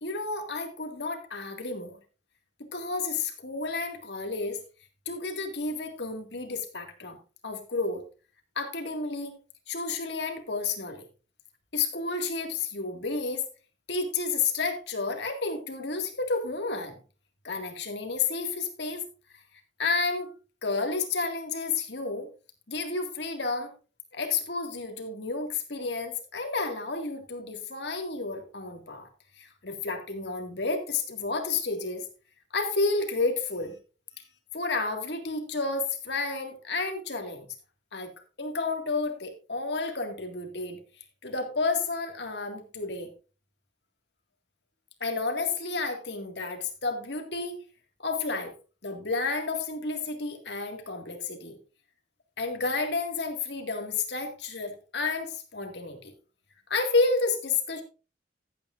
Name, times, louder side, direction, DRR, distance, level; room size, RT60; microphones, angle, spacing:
voice 1, 0.0-2.0 2.7-4.6 5.1-7.2 7.4-8.0 8.6-9.4 9.7-11.1 11.7-13.4 13.9-17.0 17.4-19.1 19.8-20.3 20.6-22.3 22.7-23.7 24.1-29.1 29.4-32.0 32.5-33.7 34.5-37.5 37.9-38.1 38.4-40.8 41.2-43.1 45.0-47.6 48.0-48.5 48.8-51.6 52.4-56.1 56.7-57.8, left 3 dB, 70° left, 5 dB, 2.0 m, -31 dB
15.0 x 8.7 x 2.5 m, 0.33 s
head